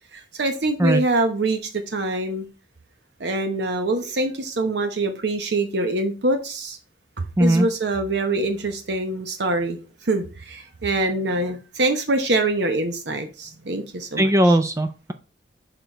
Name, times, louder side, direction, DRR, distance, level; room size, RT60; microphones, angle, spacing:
voice 1, 0.1-1.6 1.9-2.4 3.2-6.8 7.4-14.6, right 2 dB, 65° right, 7 dB, 0.8 m, -24 dB
voice 2, 7.4-7.7 14.2-15.1, right 1 dB, 15° right, 8 dB, 0.4 m, -18 dB
6.7 x 3.9 x 4.5 m, 0.33 s
head